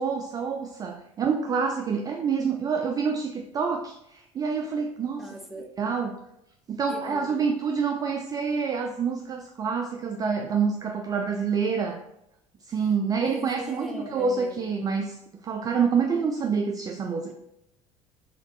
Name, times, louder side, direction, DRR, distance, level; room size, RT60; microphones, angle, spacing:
voice 1, 0.0-5.3 5.8-6.1 6.7-12.0 12.7-15.2 15.4-17.3, right 5 dB, 25° right, 3 dB, 0.3 m, -27 dB
voice 2, 5.1-5.7 6.9-7.6 13.1-14.7, equal, ahead, 1 dB, 0.7 m, -39 dB
3.9 x 2.4 x 3.3 m, 0.80 s
figure-of-eight pair, 60°, 16 cm